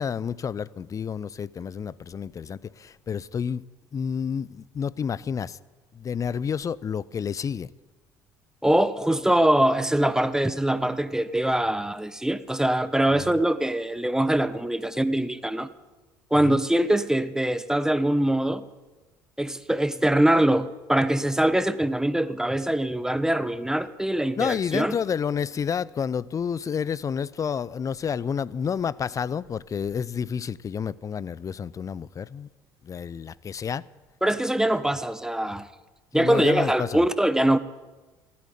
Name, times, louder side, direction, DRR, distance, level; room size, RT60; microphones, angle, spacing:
voice 1, 0.0-3.6 3.9-5.6 5.9-7.7 13.1-13.4 16.4-16.6 24.4-32.5 32.8-33.9 36.1-37.0, left 7 dB, 35° left, 0.6 m, -30 dB
voice 2, 8.6-15.7 16.3-18.7 19.4-24.9 34.2-35.7 36.1-37.6, right 1 dB, 5° right, 1.0 m, -23 dB
15.5 x 8.7 x 10.0 m
hypercardioid pair, 65°, 10 cm